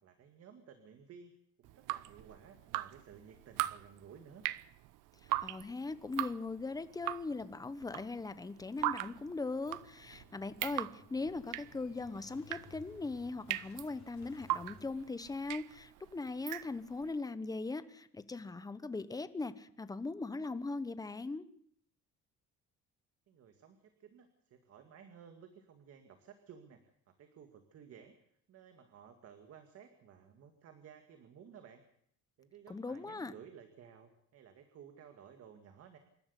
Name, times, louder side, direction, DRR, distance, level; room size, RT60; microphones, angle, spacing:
voice 1, 0.0-1.3 1.6-4.4 23.3-26.8 27.1-28.2 28.5-31.8 32.4-36.0, right 7 dB, 50° right, 7 dB, 2.2 m, -56 dB
Drip, 1.6-17.1, right 16 dB, 90° right, 0.8 m, -40 dB
voice 2, 5.2-21.5 32.7-33.3, left 3 dB, 10° left, 12 dB, 1.0 m, -40 dB
Motorcycle / Engine starting, 8.6-15.8, left 5 dB, 60° left, 5.1 m, -61 dB
26.5 x 12.5 x 8.3 m, 0.67 s
cardioid pair, 155°, 31 cm